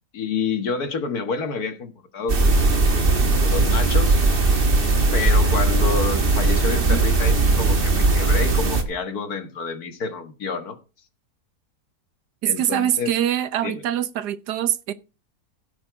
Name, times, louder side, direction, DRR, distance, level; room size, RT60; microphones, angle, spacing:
voice 1, 0.1-2.7 3.3-4.2 5.1-10.8 12.5-13.1 13.6-13.8, left 4 dB, 70° left, 2.1 m, -29 dB
sound 1, 2.3-8.8, right 3 dB, 35° right, 1.7 m, -19 dB
voice 2, 12.4-14.9, right 11 dB, 90° right, 1.5 m, -24 dB
15.5 x 6.8 x 4.6 m
omnidirectional pair, 1.7 m